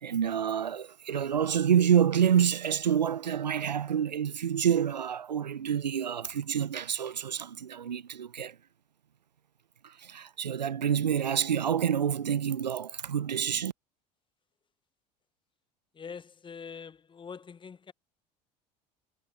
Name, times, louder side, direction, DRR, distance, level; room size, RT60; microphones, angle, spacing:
voice 1, 0.0-8.6 9.8-13.7, right 8 dB, 90° right, 0.7 m, -28 dB
voice 2, 15.9-17.9, left 6 dB, 25° left, 0.9 m, -44 dB
hypercardioid pair, 70°, 21 cm